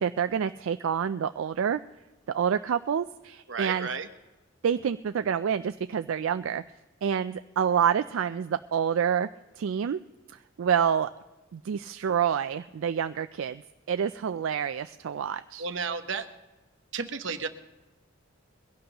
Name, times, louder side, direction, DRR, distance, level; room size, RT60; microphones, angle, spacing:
voice 1, 0.0-1.8 2.3-3.9 4.6-6.6 7.0-9.3 9.6-10.0 10.6-11.1 11.5-13.6 13.9-15.7, right 8 dB, 85° right, 10 dB, 0.4 m, -27 dB
voice 2, 3.5-4.1 15.6-16.3 16.9-17.5, right 5 dB, 65° right, 9 dB, 0.9 m, -32 dB
22.0 x 16.5 x 2.9 m, 1.1 s
head